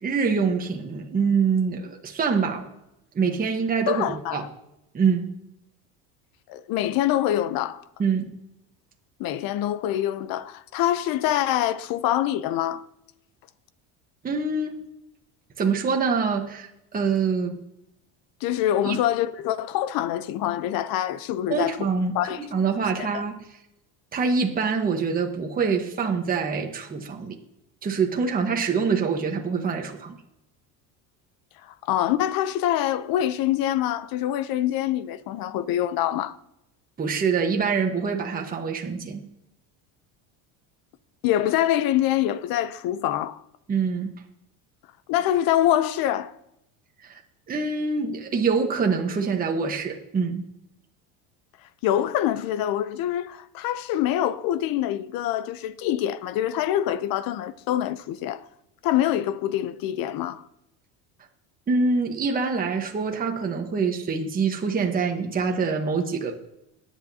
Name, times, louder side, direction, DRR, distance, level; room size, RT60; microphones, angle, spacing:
voice 1, 0.0-2.7 3.1-4.4 4.9-5.3 8.0-8.3 14.2-14.8 15.6-17.6 18.8-19.0 21.5-23.4 24.1-27.4 27.8-30.2 37.0-39.2 43.7-44.1 47.0-47.2 47.5-50.4 61.7-66.3, right 5 dB, 20° right, 1.3 m, -25 dB
voice 2, 3.9-4.4 6.5-7.8 9.2-12.8 18.4-21.9 22.1-22.4 23.0-23.2 31.6-36.3 41.2-43.4 45.1-46.3 51.8-58.4 58.8-60.4, left 12 dB, 55° left, 0.8 m, -25 dB
21.0 x 8.4 x 2.8 m
cardioid pair, 130°, 40 cm